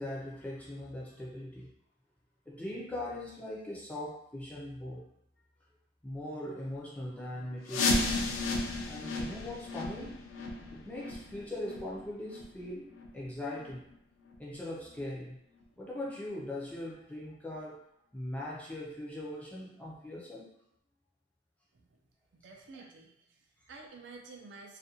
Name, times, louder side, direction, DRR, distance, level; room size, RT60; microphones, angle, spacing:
voice 1, 0.0-1.7 2.5-5.0 6.0-10.2 10.6-13.9 14.4-15.4 15.8-17.8 18.1-20.5 22.7-22.8, left 1 dB, 5° left, -5 dB, 0.4 m, -41 dB
sound 1, 7.7-13.3 13.6-13.7 14.3-14.4 15.0-15.1 15.6-15.7, left 2 dB, 85° left, 0.4 m, -34 dB
voice 2, 22.3-24.8, right 3 dB, 65° right, 1 dB, 0.4 m, -51 dB
2.4 x 2.1 x 2.7 m, 0.75 s
head